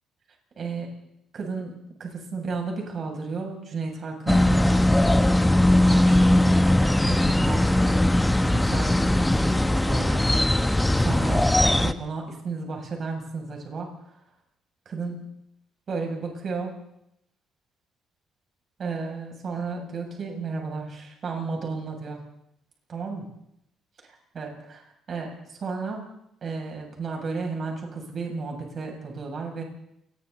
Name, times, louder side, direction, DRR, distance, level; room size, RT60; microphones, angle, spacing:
voice 1, 0.6-0.9 1.3-4.9 5.9-6.6 7.0-8.0 8.5-10.7 10.9-13.9 14.9-15.3 15.9-16.8 18.8-22.2 22.9-23.3 24.3-26.0 26.4-29.6, right 4 dB, 45° right, 1 dB, 7.6 m, -33 dB
sound 1, 4.3-11.9, left 1 dB, 5° left, 1.0 m, -20 dB
29.5 x 22.0 x 4.2 m, 0.76 s
cardioid pair, 125°, 0 cm